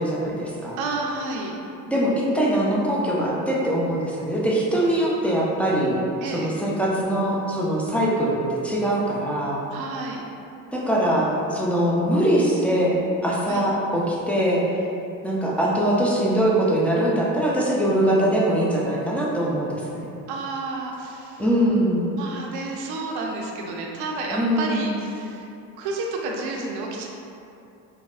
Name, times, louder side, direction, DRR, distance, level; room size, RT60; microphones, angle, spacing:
voice 1, 0.0-0.8 1.9-6.0 6.3-9.6 10.7-14.6 15.2-20.1 21.4-22.0 24.3-25.0, right 1 dB, 5° left, -6 dB, 0.3 m, -22 dB
voice 2, 0.8-1.5 6.2-6.5 9.7-10.2 13.5-13.6 20.3-21.4 22.2-25.4 25.8-27.1, right 3 dB, 50° right, -1 dB, 0.5 m, -30 dB
4.0 x 2.0 x 2.4 m, 2.7 s
hypercardioid pair, 55°, 49 cm